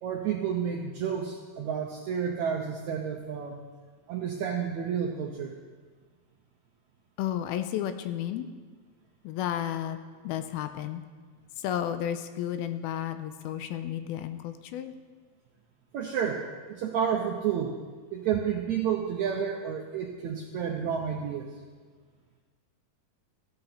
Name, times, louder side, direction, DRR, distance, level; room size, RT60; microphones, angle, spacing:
voice 1, 0.0-3.6 4.1-5.6 15.9-17.8 18.1-21.5, right 8 dB, 85° right, 2 dB, 1.6 m, -30 dB
voice 2, 7.2-8.5 9.2-10.0 10.2-11.0 11.6-14.9, left 11 dB, 85° left, 9 dB, 2.5 m, -32 dB
14.5 x 12.0 x 4.3 m, 1.5 s
omnidirectional pair, 4.4 m